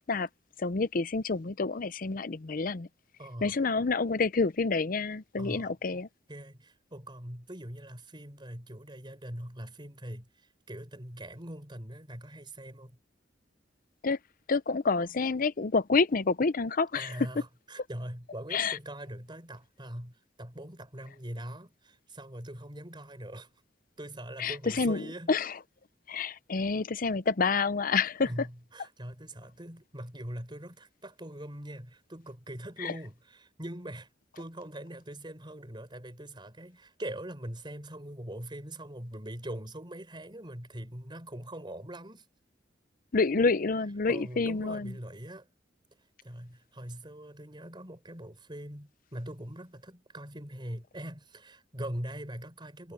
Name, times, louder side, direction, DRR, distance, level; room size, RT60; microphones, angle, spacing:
voice 1, 0.6-2.9 3.4-6.1 14.0-14.2 14.5-17.1 18.5-18.8 24.4-25.5 26.1-28.3 32.8-32.9 43.1-44.9, left 4 dB, 50° left, 0.7 m, -28 dB
voice 2, 3.2-3.5 5.4-6.0 6.3-10.3 10.7-13.0 16.9-23.5 24.0-25.4 28.2-34.1 34.3-42.2 44.1-45.5 46.2-52.9, right 1 dB, 25° right, 5.2 m, -42 dB
head